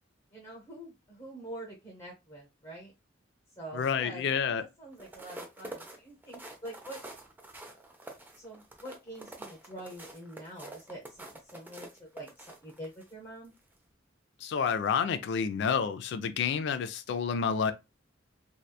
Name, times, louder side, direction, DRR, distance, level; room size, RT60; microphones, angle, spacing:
voice 1, 0.3-2.9 3.6-7.0 8.3-13.5, right 1 dB, 25° left, 0.8 m, -46 dB
voice 2, 3.7-4.6 14.4-17.7, left 6 dB, 60° left, 0.3 m, -29 dB
sound 1, 4.9-13.1 13.6-13.8, right 1 dB, 10° right, 0.4 m, -47 dB
2.8 x 2.2 x 2.2 m
head